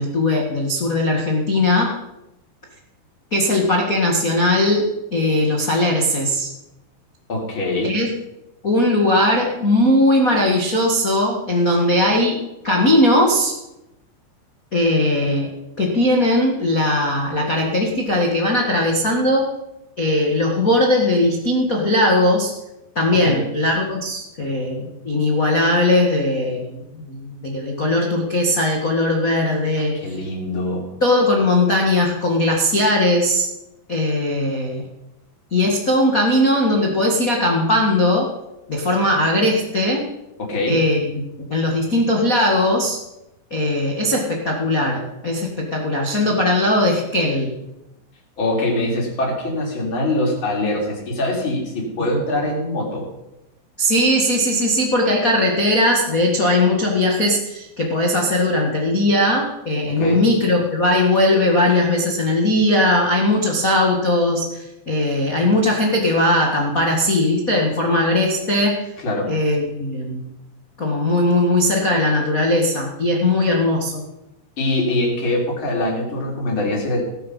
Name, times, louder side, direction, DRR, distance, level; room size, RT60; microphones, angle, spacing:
voice 1, 0.0-1.9 3.3-6.5 7.8-8.1 8.6-13.5 14.7-19.5 20.0-22.5 22.9-30.0 31.0-33.5 33.9-34.9 35.5-38.3 38.7-40.1 40.7-43.0 43.5-47.5 52.0-52.1 53.8-68.8 69.3-70.3 70.8-74.0, left 1 dB, 55° left, -1 dB, 0.9 m, -19 dB
voice 2, 7.3-7.9 23.1-23.4 29.8-30.9 40.4-40.8 48.4-53.0 59.9-60.2 69.0-69.3 74.6-77.0, left 1 dB, 30° left, -1 dB, 4.0 m, -23 dB
18.0 x 10.0 x 5.5 m, 0.91 s
omnidirectional pair, 4.8 m